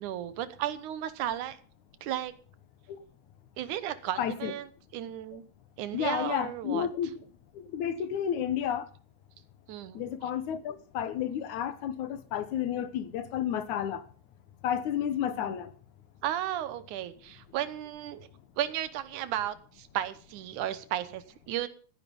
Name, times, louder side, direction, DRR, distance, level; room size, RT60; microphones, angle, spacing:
voice 1, 0.0-1.6 2.0-2.3 3.6-5.4 5.8-6.9 9.7-10.0 15.4-15.6 16.2-18.3 18.6-21.7, right 12 dB, 70° right, 2.3 m, -34 dB
voice 2, 4.2-4.5 5.9-7.1 7.6-8.9 10.0-14.0 14.6-15.7, left 9 dB, 65° left, 2.3 m, -31 dB
16.0 x 10.5 x 5.3 m
omnidirectional pair, 4.0 m